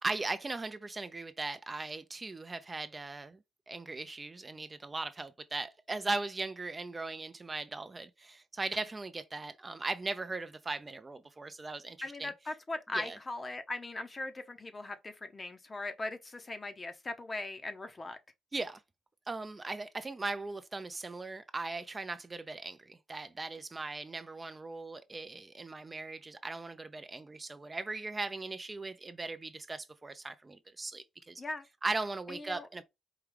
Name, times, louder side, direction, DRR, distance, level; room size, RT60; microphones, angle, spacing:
voice 1, 0.0-3.4 3.7-12.3 12.9-13.2 18.5-18.8 19.3-31.4 31.8-32.8, right 3 dB, 25° right, 0.4 m, -38 dB
voice 2, 12.0-18.2 31.4-31.6 32.3-32.7, left 2 dB, 25° left, 0.7 m, -39 dB
4.7 x 2.3 x 3.3 m
cardioid pair, 90°, 0 cm